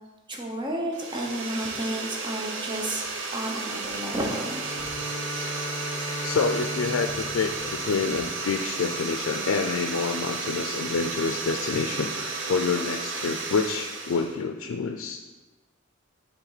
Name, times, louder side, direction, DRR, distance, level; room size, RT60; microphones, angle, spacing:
voice 1, 0.3-4.8 5.3-5.5, right 1 dB, 25° right, 0 dB, 0.9 m, -32 dB
sound 1, 0.9-14.4, right 3 dB, 65° right, 0.7 m, -33 dB
Bowed string instrument, 4.3-8.7, left 1 dB, 50° left, 0.8 m, -37 dB
voice 2, 6.2-15.2, left 4 dB, 85° left, 4 dB, 0.4 m, -27 dB
7.1 x 3.7 x 4.0 m, 1.2 s
head